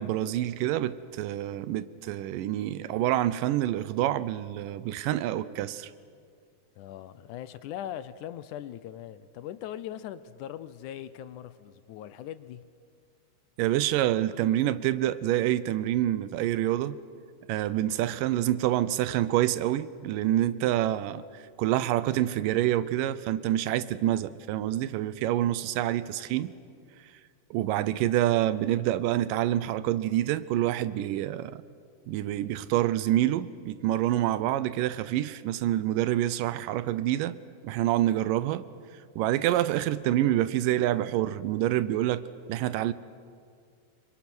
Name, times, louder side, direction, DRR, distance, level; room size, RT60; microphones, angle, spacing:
voice 1, 0.0-5.9 13.6-17.0 17.5-21.2 21.6-26.5 27.5-31.6 32.1-37.4 37.6-38.7 39.2-42.2 42.5-42.9, right 13 dB, 85° right, 2.4 m, -27 dB
voice 2, 6.8-12.7, left 11 dB, 75° left, 2.1 m, -40 dB
27.0 x 24.0 x 6.2 m
omnidirectional pair, 3.8 m